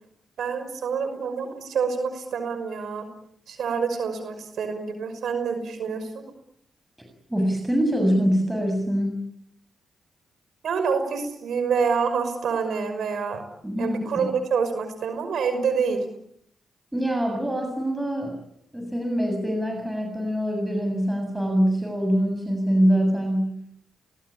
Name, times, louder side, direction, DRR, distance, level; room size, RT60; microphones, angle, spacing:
voice 1, 0.4-3.1 3.5-6.2 10.6-13.4 13.8-16.1, right 5 dB, 75° right, 9 dB, 5.7 m, -27 dB
voice 2, 7.0-9.2 13.6-14.0 16.9-18.4 18.7-23.4, equal, 10° right, 3 dB, 7.6 m, -24 dB
30.0 x 21.5 x 8.7 m, 0.74 s
cardioid pair, 60°, 0 cm